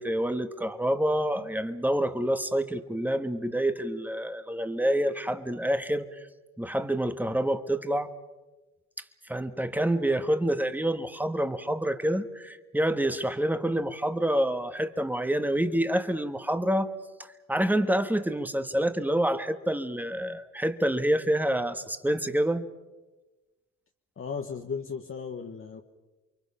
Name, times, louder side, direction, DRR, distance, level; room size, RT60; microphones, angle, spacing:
voice 1, 0.0-6.3 6.6-8.1 9.3-16.9 17.2-22.7, right 1 dB, 5° right, 9 dB, 1.5 m, -27 dB
voice 2, 24.2-25.8, left 5 dB, 45° left, 3 dB, 1.4 m, -35 dB
29.0 x 23.5 x 5.7 m, 1.2 s
cardioid pair, 90°, 30 cm